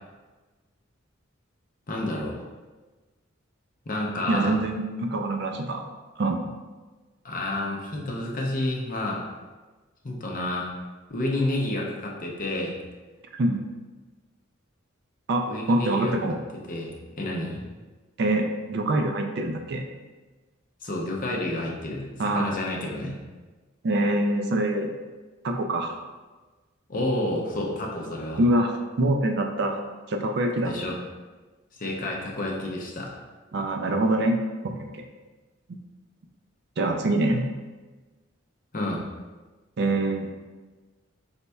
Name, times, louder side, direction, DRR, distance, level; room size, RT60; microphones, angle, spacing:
voice 1, 1.9-2.4 3.9-4.6 7.2-9.2 10.0-10.7 11.1-12.8 15.4-16.2 16.7-17.6 20.8-23.1 26.9-28.4 30.6-31.0 31.8-33.1 38.7-39.0, left 1 dB, 40° left, -1 dB, 0.6 m, -29 dB
voice 2, 4.3-5.8 6.2-6.5 13.4-13.6 15.3-16.4 18.2-19.8 22.2-22.5 23.8-24.9 25.4-26.0 28.4-28.7 29.0-29.7 30.1-30.7 33.5-34.4 34.6-35.0 35.7-35.8 36.8-37.4 39.8-40.3, right 1 dB, 55° right, 4 dB, 0.4 m, -25 dB
4.3 x 4.0 x 2.3 m, 1.3 s
head